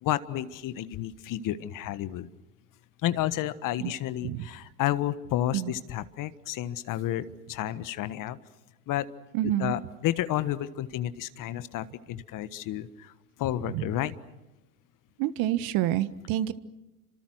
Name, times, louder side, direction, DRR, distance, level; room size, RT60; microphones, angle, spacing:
voice 1, 0.0-2.3 3.0-8.4 8.9-9.1 9.6-13.1 13.4-14.1, left 13 dB, 45° left, 14 dB, 1.4 m, -31 dB
voice 2, 9.3-9.8 13.7-13.8 15.2-16.5, right 13 dB, 50° right, 14 dB, 1.5 m, -28 dB
29.0 x 26.0 x 6.3 m, 1.0 s
hypercardioid pair, 85°, 45 cm